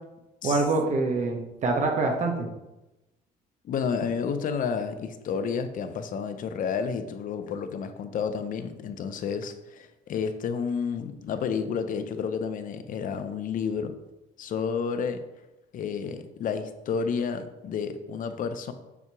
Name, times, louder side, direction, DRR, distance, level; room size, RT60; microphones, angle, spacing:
voice 1, 0.4-2.5, right 3 dB, 45° right, 1 dB, 0.9 m, -25 dB
voice 2, 3.6-13.9 14.4-15.2 15.7-18.7, left 6 dB, 50° left, 9 dB, 0.6 m, -30 dB
7.1 x 2.8 x 4.7 m, 0.99 s
cardioid pair, 110°, 17 cm